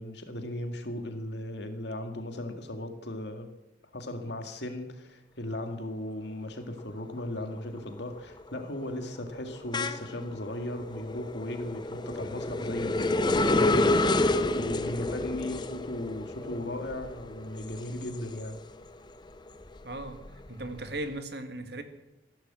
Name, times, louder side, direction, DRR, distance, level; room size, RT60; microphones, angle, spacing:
voice 1, 0.0-3.5 3.9-18.6, left 1 dB, 65° left, 6 dB, 2.1 m, -37 dB
sound 1, 6.8-7.2 7.6-18.9 19.3-21.0, left 2 dB, 25° left, 0.7 m, -30 dB
voice 2, 19.8-20.2 20.5-21.8, right 1 dB, 60° right, 8 dB, 1.8 m, -37 dB
16.0 x 11.5 x 7.6 m, 0.93 s
head